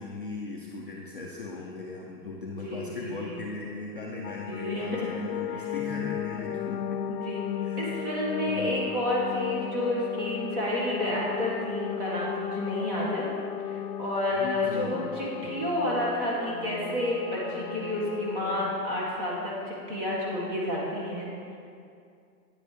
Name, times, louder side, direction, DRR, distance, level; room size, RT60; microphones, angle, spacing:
voice 1, 0.0-7.0 7.6-7.9 8.5-8.7 14.3-15.0, left 3 dB, 35° left, -4 dB, 0.4 m, -38 dB
voice 2, 2.6-3.4 4.5-5.1 5.5-5.7 7.1-7.4 7.8-13.3 13.7-21.6, left 1 dB, 30° right, -5 dB, 1.9 m, -30 dB
sound 1, 4.2-18.7, left 9 dB, 85° left, 0.6 m, -35 dB
9.2 x 7.8 x 3.4 m, 2.4 s
hypercardioid pair, 170°, 49 cm